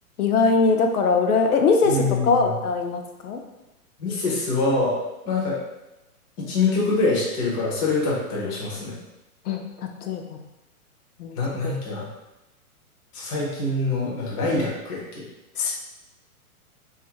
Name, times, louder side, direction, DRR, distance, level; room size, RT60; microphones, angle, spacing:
voice 1, 0.2-1.9 2.2-3.4 9.5-9.6 10.1-10.2 11.2-11.4 11.6-11.7 15.6-15.8, left 4 dB, 80° left, 4 dB, 0.6 m, -21 dB
voice 2, 1.8-2.6 4.0-5.0 5.2-5.6 6.4-9.0 11.4-12.1 13.1-15.2, left 3 dB, 25° left, -4 dB, 0.6 m, -25 dB
2.6 x 2.4 x 2.8 m, 0.99 s
hypercardioid pair, 140°, 44 cm